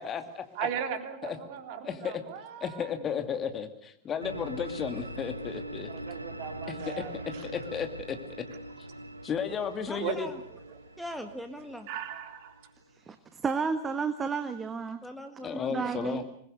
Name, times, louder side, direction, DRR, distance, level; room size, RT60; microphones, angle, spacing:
voice 1, 0.0-0.4 1.2-1.4 1.8-2.2 2.6-5.9 6.7-6.9 7.4-8.2 9.2-10.3 15.4-16.2, left 7 dB, 25° left, 8 dB, 2.6 m, -34 dB
voice 2, 0.5-2.9 5.9-7.4 10.0-10.2 11.9-12.5, right 9 dB, 45° right, 7 dB, 3.3 m, -37 dB
sound 1, 4.2-13.1, right 1 dB, 85° right, 1.1 m, -42 dB
voice 3, 9.9-10.4 11.0-11.9 15.0-16.1, equal, ahead, 6 dB, 1.8 m, -41 dB
voice 4, 13.0-15.0 15.5-16.2, right 5 dB, 20° right, 11 dB, 1.4 m, -32 dB
26.5 x 21.0 x 6.8 m, 0.65 s
figure-of-eight pair, 90°, 0 cm